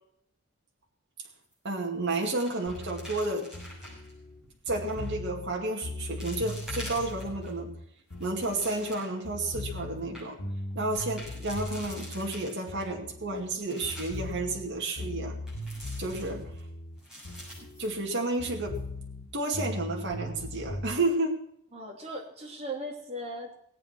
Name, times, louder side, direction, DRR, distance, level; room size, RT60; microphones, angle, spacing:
sound 1, 1.4-1.8 2.0-4.1 4.8-5.1 5.7-5.8 6.2-7.5 8.0-9.3 9.7-9.8 10.0-10.2 10.9-12.9 13.3-14.3 15.5-16.6 17.0-18.5 18.7-18.8 19.3-19.6, equal, 5° right, 7.0 m, -46 dB
voice 1, 1.6-3.5 4.7-7.7 8.2-10.4 10.7-15.4 16.0-16.5 17.8-18.8 19.3-21.4, right 2 dB, 50° right, 0 dB, 2.3 m, -31 dB
sound 2, 2.7-9.0 9.2-13.5 13.8-18.1 18.4-20.9, left 1 dB, 75° left, 2.2 m, -39 dB
voice 2, 21.7-23.5, right 1 dB, 25° right, 0 dB, 3.0 m, -38 dB
18.5 x 8.7 x 6.0 m, 0.73 s
head